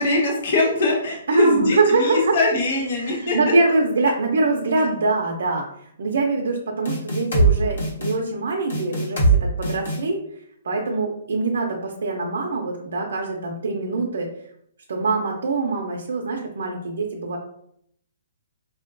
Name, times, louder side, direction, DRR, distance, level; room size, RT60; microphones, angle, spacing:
voice 1, 0.0-3.4, left 2 dB, 45° left, -1 dB, 0.7 m, -22 dB
voice 2, 1.3-2.4 3.0-10.2 10.6-14.3 14.9-17.4, right 3 dB, 65° right, -1 dB, 0.5 m, -23 dB
sound 1, 6.9-7.5 7.8-8.1 8.7-9.4 9.6-10.0, right 3 dB, 75° left, 1.2 m, -20 dB
4.8 x 2.2 x 2.5 m, 0.70 s
hypercardioid pair, 175°, 0 cm